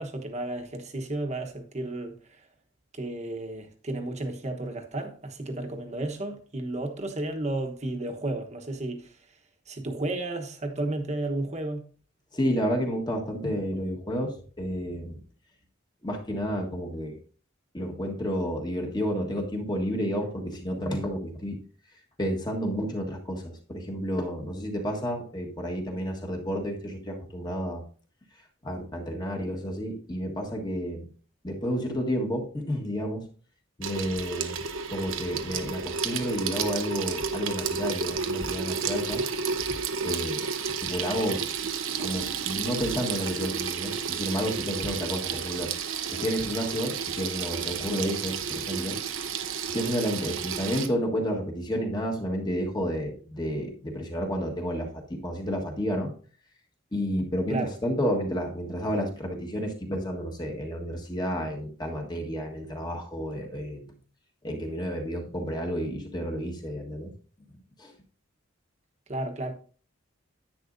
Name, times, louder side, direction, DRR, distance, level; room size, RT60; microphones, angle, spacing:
voice 1, 0.0-2.4 2.9-9.1 9.7-11.8 57.5-57.7 69.1-69.5, right 2 dB, 35° right, 1.1 m, -33 dB
voice 2, 12.3-15.2 16.0-17.2 17.7-21.6 22.2-27.8 28.6-31.1 31.4-33.2 33.8-34.6 34.9-39.2 40.0-40.4 40.8-41.5 42.0-45.7 46.1-49.0 49.7-56.1 56.9-63.9 64.4-67.1 67.8-67.9, equal, 20° left, 1.4 m, -31 dB
Water tap faucet / Sink (filling or washing), 33.8-50.9, right 6 dB, 85° right, 0.9 m, -31 dB
10.0 x 9.1 x 2.6 m
head